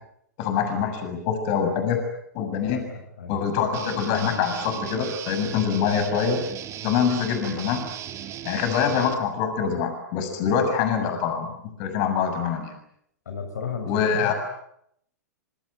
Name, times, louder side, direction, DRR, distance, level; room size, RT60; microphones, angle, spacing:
voice 1, 0.4-2.0 2.3-2.8 3.3-6.4 6.8-7.8 8.4-11.5 11.8-12.8 13.9-14.4, left 7 dB, 45° left, 6 dB, 6.9 m, -24 dB
voice 2, 2.7-3.4 13.2-14.4, left 6 dB, 70° left, 5 dB, 6.8 m, -34 dB
Guitar, 3.7-9.1, right 11 dB, 30° right, 3.0 m, -37 dB
26.5 x 25.0 x 8.9 m, 0.73 s
figure-of-eight pair, 110°, 9 cm